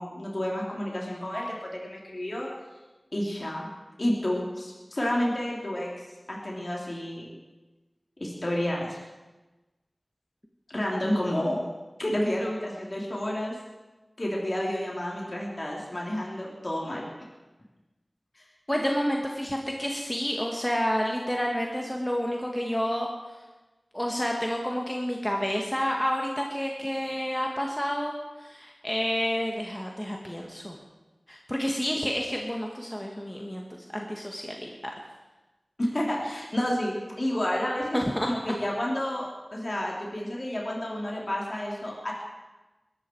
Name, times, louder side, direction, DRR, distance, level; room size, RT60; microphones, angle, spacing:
voice 1, 0.0-2.5 3.1-3.7 4.0-7.3 8.2-9.0 10.7-11.6 12.0-13.6 14.2-17.0 18.4-18.5 35.8-42.1, left 1 dB, 45° left, -3 dB, 3.6 m, -30 dB
voice 2, 18.7-23.1 23.9-28.1 28.4-30.8 31.3-33.7 33.9-34.9 37.9-38.6, equal, 15° left, 0 dB, 1.8 m, -29 dB
22.0 x 13.0 x 4.7 m, 1.1 s
wide cardioid pair, 55°, 0 cm